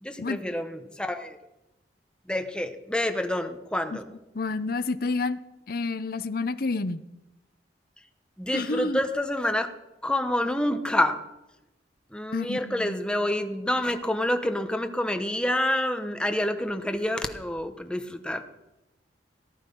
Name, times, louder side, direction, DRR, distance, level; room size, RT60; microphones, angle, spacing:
voice 1, 0.0-1.4 2.3-4.0 8.4-9.7 10.0-11.2 12.1-18.4, left 1 dB, 5° left, 7 dB, 1.0 m, -28 dB
voice 2, 4.3-5.4 5.7-7.0 8.5-9.0 12.3-13.0, left 3 dB, 55° left, 13 dB, 0.7 m, -29 dB
18.5 x 11.5 x 5.4 m, 0.98 s
head